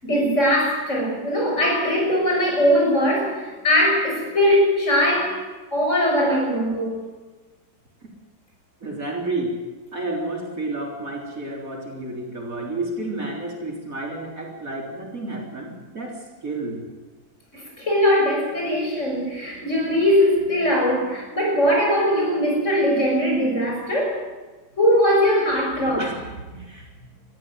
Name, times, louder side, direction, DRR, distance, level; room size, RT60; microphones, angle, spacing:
voice 1, 0.0-7.0 17.5-24.2 24.8-26.1, equal, 40° left, -1 dB, 6.6 m, -20 dB
voice 2, 8.8-9.6 9.9-16.8 26.0-26.2 26.6-26.9, right 2 dB, 45° right, 0 dB, 4.1 m, -30 dB
21.5 x 14.0 x 9.1 m, 1.3 s
omnidirectional pair, 2.0 m